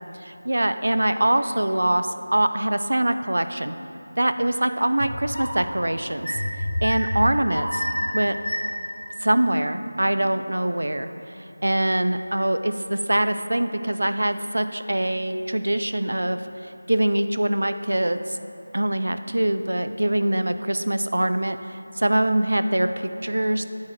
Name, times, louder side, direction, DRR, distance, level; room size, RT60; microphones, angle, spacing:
voice 1, 0.2-3.8 4.2-6.3 6.8-7.7 8.1-8.4 9.2-11.1 11.6-16.4 16.9-18.4 18.7-23.6, right 1 dB, 80° right, 10 dB, 0.4 m, -23 dB
sound 1, 5.0-5.6 6.2-8.9, left 1 dB, 70° left, 1.3 m, -28 dB
9.2 x 4.5 x 4.6 m, 2.9 s
figure-of-eight pair, 175°, 0 cm